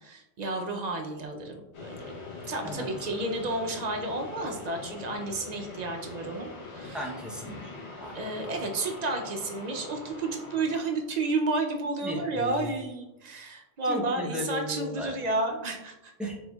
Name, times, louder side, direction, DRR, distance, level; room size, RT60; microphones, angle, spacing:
voice 1, 0.0-2.0 2.5-7.1 8.1-16.1, right 2 dB, 55° right, 3 dB, 0.5 m, -31 dB
sound 1, 1.7-12.0, left 3 dB, 80° left, 1.1 m, -43 dB
voice 2, 6.9-8.2 8.4-8.5 12.0-12.7 13.8-15.2 16.2-16.4, equal, ahead, -2 dB, 0.4 m, -36 dB
4.4 x 4.0 x 2.2 m, 0.95 s
omnidirectional pair, 1.1 m